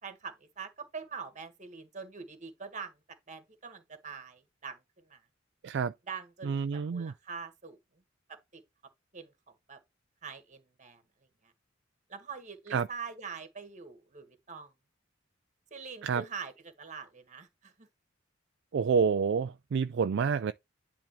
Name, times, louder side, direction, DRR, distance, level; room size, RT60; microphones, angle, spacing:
voice 1, 0.0-5.2 6.1-7.8 8.3-8.6 9.1-9.3 9.7-9.8 10.2-11.0 11.4-11.5 12.1-14.7 15.7-17.9, right 5 dB, 40° right, 1.6 m, -44 dB
voice 2, 6.4-7.1 12.7-12.9 16.0-16.2 18.7-20.5, right 6 dB, 60° right, 0.4 m, -28 dB
10.5 x 3.6 x 3.1 m
head